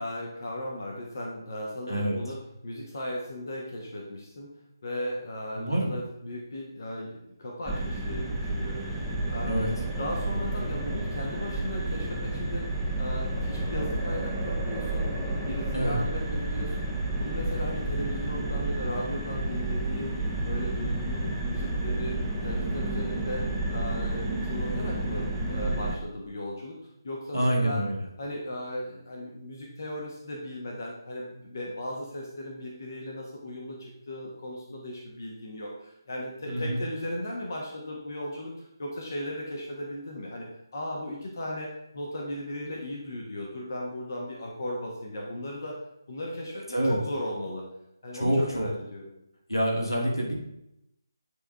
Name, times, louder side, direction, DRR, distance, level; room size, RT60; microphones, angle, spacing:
voice 1, 0.0-2.4 2.6-4.5 4.8-12.7 13.0-15.1 15.4-16.9 17.2-20.2 20.4-22.1 22.4-26.8 27.0-27.8 28.2-40.5 40.7-41.7 41.9-45.8 46.1-46.6 46.9-47.7 48.0-49.0, left 1 dB, 45° left, -1 dB, 1.3 m, -36 dB
voice 2, 1.9-2.2 5.5-5.9 9.4-9.7 15.7-16.0 27.3-28.0 36.5-36.8 46.5-47.0 48.1-48.7 49.5-50.3, right 1 dB, 90° left, -2 dB, 2.3 m, -26 dB
sound 1, 7.7-26.0, right 2 dB, 5° right, 0.8 m, -31 dB
9.5 x 3.7 x 3.5 m, 0.83 s
figure-of-eight pair, 150°, 2 cm